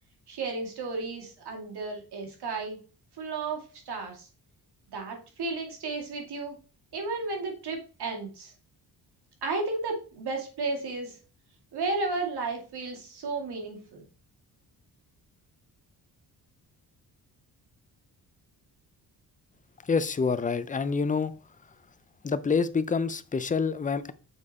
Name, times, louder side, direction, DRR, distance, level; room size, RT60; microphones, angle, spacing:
voice 1, 0.3-2.8 3.2-4.3 4.9-6.6 6.9-8.5 9.4-11.2 11.7-14.0, right 3 dB, 70° right, 2.5 m, -33 dB
voice 2, 19.8-21.3 22.2-24.1, left 5 dB, 20° left, 0.6 m, -27 dB
7.0 x 4.8 x 4.2 m
cardioid pair, 85°, 40 cm